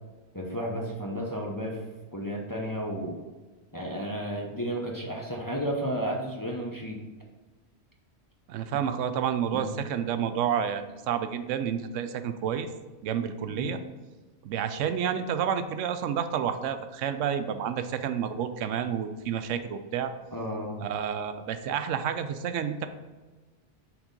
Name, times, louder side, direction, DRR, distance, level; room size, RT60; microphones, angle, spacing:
voice 1, 0.3-1.8 2.1-3.2 3.7-7.0 9.5-9.8 13.5-13.8 20.3-20.8, equal, 20° left, -1 dB, 0.6 m, -33 dB
voice 2, 8.5-12.7 13.0-13.8 14.4-20.1 20.8-22.9, right 8 dB, 85° right, 9 dB, 0.9 m, -30 dB
6.1 x 3.7 x 5.2 m, 1.3 s
omnidirectional pair, 1.2 m